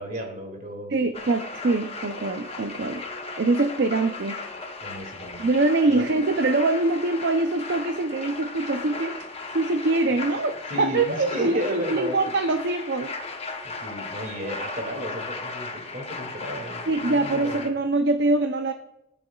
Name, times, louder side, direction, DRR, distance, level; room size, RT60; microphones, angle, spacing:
voice 1, 0.0-1.0 4.8-5.4 5.9-6.1 10.1-10.2 10.7-12.3 13.6-17.6, equal, 40° right, 2 dB, 2.3 m, -34 dB
voice 2, 0.9-3.0 3.4-4.4 5.4-9.2 9.5-13.1 16.9-18.7, right 2 dB, 60° right, 7 dB, 0.6 m, -24 dB
sound 1, 1.1-17.7, left 3 dB, 30° left, 0.9 m, -36 dB
19.5 x 6.9 x 2.3 m, 0.88 s
head